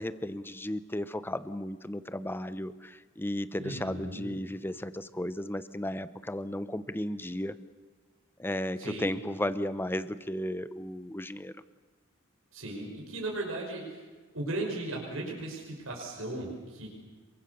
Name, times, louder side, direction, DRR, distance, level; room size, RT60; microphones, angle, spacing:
voice 1, 0.0-7.6 8.4-11.5, left 1 dB, 10° left, 13 dB, 0.9 m, -34 dB
voice 2, 3.6-4.4 8.8-9.2 12.5-14.0 14.3-16.9, right 2 dB, 80° right, -1 dB, 5.7 m, -36 dB
28.0 x 23.5 x 7.0 m, 1.3 s
head